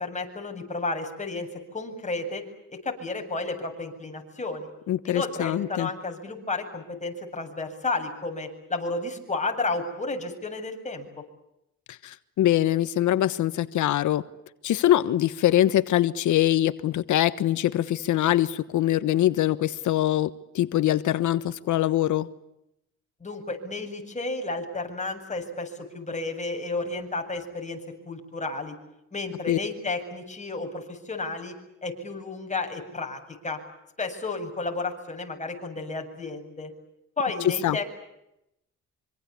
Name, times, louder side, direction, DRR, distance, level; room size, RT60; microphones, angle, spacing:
voice 1, 0.0-2.4 2.7-4.7 5.0-11.1 23.2-28.7 29.1-31.6 31.8-33.6 34.0-36.7 37.2-37.8, left 3 dB, 25° left, 3 dB, 7.9 m, -32 dB
voice 2, 4.9-5.9 12.0-14.2 14.6-22.3 29.5-29.6 37.6-37.8, left 13 dB, 75° left, 13 dB, 1.3 m, -23 dB
26.0 x 25.5 x 8.5 m, 0.84 s
cardioid pair, 90°, 30 cm